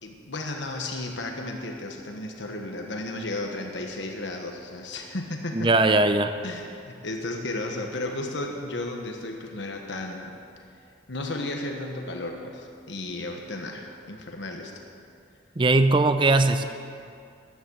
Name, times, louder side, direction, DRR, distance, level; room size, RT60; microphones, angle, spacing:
voice 1, 0.0-5.7 6.4-10.4 11.1-14.7, left 2 dB, 75° left, 2 dB, 1.3 m, -34 dB
voice 2, 5.5-6.3 15.6-16.7, right 2 dB, 25° right, 9 dB, 0.5 m, -20 dB
14.0 x 11.0 x 6.4 m, 2.4 s
head